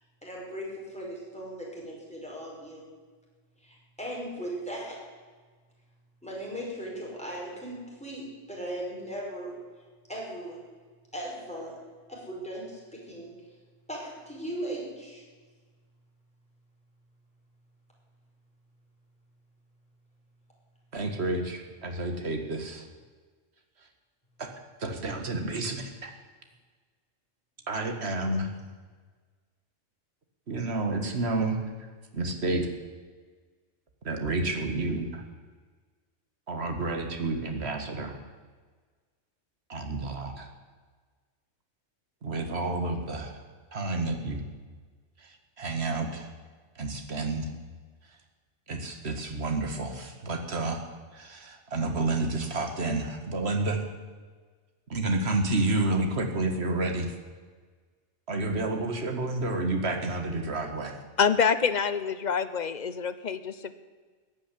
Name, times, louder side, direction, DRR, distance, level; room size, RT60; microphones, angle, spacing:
voice 1, 0.2-2.8 3.6-5.0 6.2-9.5 10.1-10.6 11.1-11.8 12.1-13.3 13.9-15.2, right 1 dB, 5° left, -4 dB, 5.4 m, -38 dB
voice 2, 20.9-22.9 24.4-24.5 24.8-26.1 27.7-28.5 30.5-31.7 32.1-32.7 34.0-35.2 36.5-38.2 39.7-40.5 42.2-43.3 43.7-44.5 45.2-46.3 46.8-47.5 48.7-50.8 51.1-53.8 54.9-57.1 58.3-61.0, right 2 dB, 55° right, 5 dB, 2.1 m, -30 dB
voice 3, 61.2-63.7, left 6 dB, 40° left, 12 dB, 0.8 m, -26 dB
15.0 x 9.7 x 10.0 m, 1.5 s
omnidirectional pair, 1.3 m